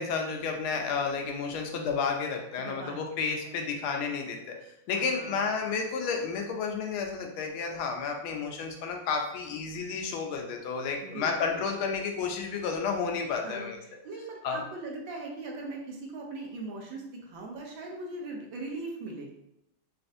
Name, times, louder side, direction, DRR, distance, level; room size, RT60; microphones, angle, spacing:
voice 1, 0.0-4.5 4.9-13.8 14.4-14.6, left 5 dB, 85° left, 2 dB, 1.4 m, -31 dB
voice 2, 2.6-3.7 4.9-5.5 11.0-11.8 13.4-13.7 14.0-19.3, right 2 dB, 75° right, 0 dB, 1.3 m, -40 dB
4.1 x 2.4 x 2.5 m, 0.84 s
omnidirectional pair, 2.2 m